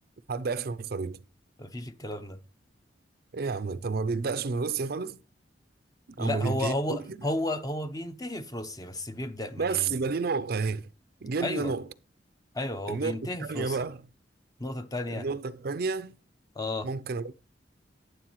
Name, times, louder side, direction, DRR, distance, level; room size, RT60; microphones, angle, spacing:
voice 1, 0.3-1.2 3.3-5.2 6.1-7.2 9.6-10.9 11.2-11.9 12.9-14.0 15.1-16.1 16.8-17.3, right 4 dB, 55° right, 0.5 m, -31 dB
voice 2, 1.6-2.4 6.2-10.0 11.4-11.7 12.5-13.8 14.6-15.3 16.6-16.9, left 1 dB, 20° left, 0.8 m, -33 dB
11.0 x 9.5 x 3.0 m
head